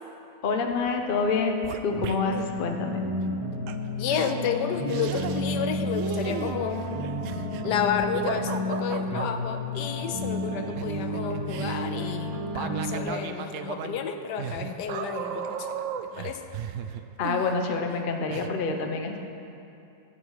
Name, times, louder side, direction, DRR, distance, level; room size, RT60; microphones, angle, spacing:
voice 1, 0.4-3.0 17.2-19.2, left 4 dB, 45° left, 3 dB, 0.7 m, -27 dB
sound 1, 0.7-1.0 1.2-2.5 3.7-3.8 4.1-4.3 4.9-5.7 5.9-9.3 10.4-18.0 18.3-18.5, right 9 dB, 90° right, 0.6 m, -36 dB
sound 2, 1.9-13.0, left 1 dB, 20° right, 1.8 m, -31 dB
voice 2, 4.0-6.9 7.6-15.8 16.1-16.4, left 7 dB, 75° left, 7 dB, 1.2 m, -31 dB
14.5 x 7.2 x 4.7 m, 2.7 s
omnidirectional pair, 1.9 m